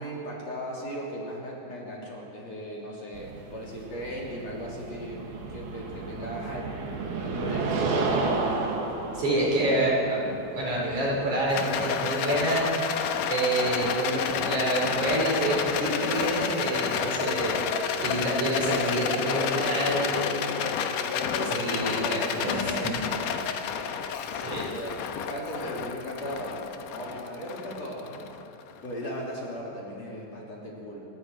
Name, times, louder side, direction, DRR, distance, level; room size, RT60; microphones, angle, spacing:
voice 1, 0.0-5.2 5.5-6.7 7.2-7.6 19.4-21.8 22.3-23.8 24.6-25.0 25.3-28.3 28.8-31.1, equal, 45° left, -4 dB, 4.3 m, -37 dB
sound 1, 3.1-12.0, right 3 dB, 90° right, 3.9 m, -32 dB
voice 2, 9.1-12.7 13.3-20.3 21.4-23.0 23.7-23.9 24.3-24.7, right 1 dB, 55° right, -4 dB, 6.6 m, -27 dB
Rattle, 11.5-28.9, left 7 dB, 75° left, 2.5 m, -30 dB
28.5 x 19.0 x 4.8 m, 2.9 s
omnidirectional pair, 4.1 m